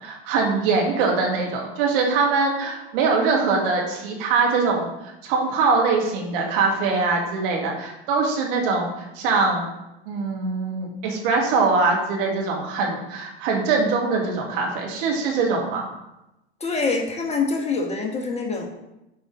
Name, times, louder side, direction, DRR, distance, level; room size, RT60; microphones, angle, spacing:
voice 1, 0.0-4.9 5.2-9.7 10.1-15.9, right 4 dB, 55° right, 0 dB, 2.1 m, -22 dB
voice 2, 16.6-18.7, left 4 dB, 20° left, 1 dB, 1.3 m, -25 dB
8.1 x 5.2 x 3.8 m, 0.92 s
figure-of-eight pair, 85°, 32 cm